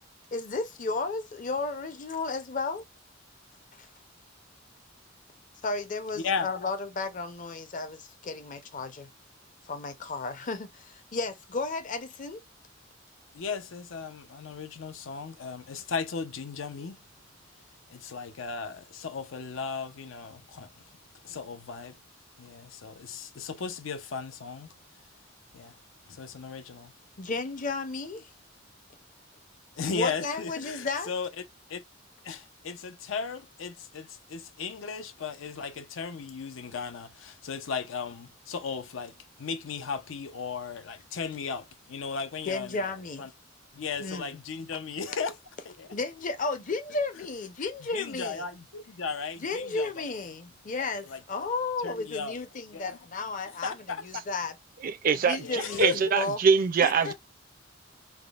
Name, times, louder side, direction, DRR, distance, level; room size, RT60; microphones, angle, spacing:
voice 1, 0.3-2.8 3.8-3.9 5.6-9.1 9.7-12.4 27.2-28.3 29.9-31.1 42.5-43.3 44.0-44.3 45.9-48.5 49.4-54.5 55.2-56.4 56.8-57.1, left 3 dB, 40° left, 0.6 m, -33 dB
voice 2, 13.3-17.0 17.9-20.8 21.2-22.0 22.4-24.7 25.5-25.7 26.1-26.9 29.8-31.3 31.7-31.8 32.2-42.9 43.2-43.3 43.7-45.3 45.7-45.9 47.9-50.0 51.0-51.2 51.8-52.4 52.7-53.0 53.6-54.0 55.3-56.1, left 5 dB, 85° left, 0.5 m, -36 dB
voice 3, 54.8-55.4 55.8-57.1, right 6 dB, 45° right, 0.4 m, -23 dB
3.5 x 2.0 x 2.3 m
head